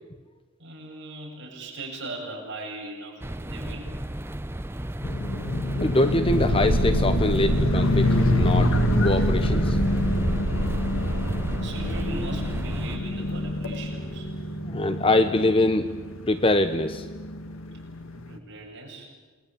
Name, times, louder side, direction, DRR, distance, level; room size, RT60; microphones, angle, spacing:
voice 1, 0.6-3.9 4.7-4.9 11.6-14.3 18.3-19.1, right 2 dB, 55° right, -2 dB, 7.9 m, -39 dB
sound 1, 3.2-13.0, right 1 dB, 10° right, 0.7 m, -34 dB
sound 2, 5.0-18.4, left 1 dB, 70° left, 2.1 m, -27 dB
voice 2, 5.8-9.8 10.5-10.7 14.7-15.9 16.3-17.1, left 2 dB, 25° left, 10 dB, 0.9 m, -24 dB
sound 3, 6.2-14.5, right 1 dB, 80° right, 1.6 m, -28 dB
28.0 x 21.5 x 8.7 m, 1.3 s
head